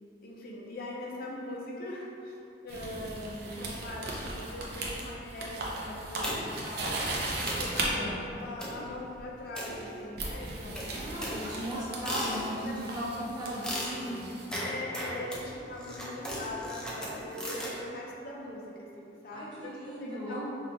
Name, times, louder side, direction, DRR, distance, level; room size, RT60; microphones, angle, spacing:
voice 1, 0.2-12.2 12.6-12.8 14.6-20.4, left 1 dB, 55° left, -3 dB, 0.5 m, -41 dB
sound 1, 2.7-7.9 9.2-9.4 10.2-14.5, right 2 dB, 60° right, 0.6 m, -37 dB
sound 2, 6.2-6.7 7.1-7.2 7.5-7.8 8.6-8.9 9.5-10.3 10.7-12.8 13.6-17.8, equal, 5° left, 0.5 m, -37 dB
voice 2, 7.9-8.2 10.9-14.4 19.3-20.4, equal, 25° right, -9 dB, 1.1 m, -37 dB
5.2 x 2.4 x 2.9 m, 2.7 s
head